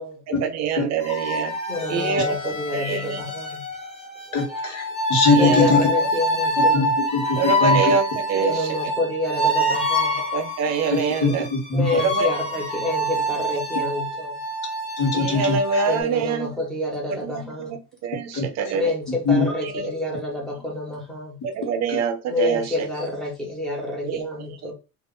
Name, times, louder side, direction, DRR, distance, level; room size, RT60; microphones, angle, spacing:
voice 1, 0.3-1.6 1.9-3.2 5.3-6.1 7.4-8.8 10.3-11.5 11.9-12.3 15.1-16.6 17.2-18.9 19.6-19.9 21.4-22.9 24.0-24.7, right 5 dB, 50° right, 0.6 m, -26 dB
sound 1, 1.0-16.0, equal, 20° left, 0.8 m, -26 dB
voice 2, 1.7-3.7 4.3-4.5 5.4-6.9 8.3-10.2 11.7-14.4 15.9-17.7 18.7-21.4 22.3-24.7, left 2 dB, ahead, 1.1 m, -28 dB
voice 3, 4.3-5.8 6.6-7.9 11.2-11.9 15.0-15.8 18.3-18.4 19.2-19.5 21.9-22.0, left 3 dB, 55° left, 1.2 m, -21 dB
2.5 x 2.5 x 3.6 m
cardioid pair, 150°, 34 cm